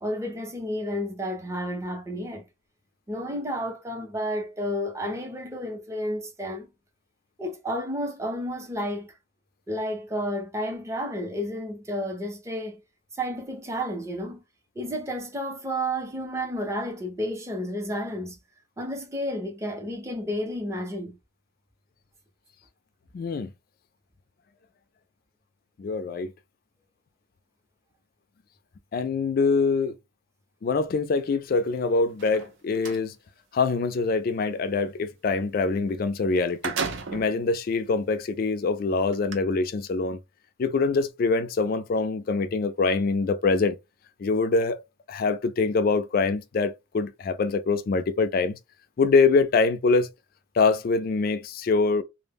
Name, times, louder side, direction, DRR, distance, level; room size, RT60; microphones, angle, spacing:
voice 1, 0.0-2.4 3.1-6.7 7.4-9.1 9.7-12.8 13.2-14.4 14.8-18.4 18.8-21.2, equal, 15° right, 0.5 m, -31 dB
voice 2, 23.1-23.5 25.8-26.3 28.9-29.9 30.6-33.1 33.5-36.7 37.1-40.2 40.6-43.8 44.2-44.8 45.1-48.6 49.0-50.1 50.6-52.0, left 4 dB, 45° left, 0.3 m, -24 dB
sound 1, 32.1-33.0 35.9-36.0 36.3-37.4 38.1-38.2 39.1-39.4, right 5 dB, 65° right, 0.5 m, -33 dB
2.0 x 2.0 x 3.3 m
head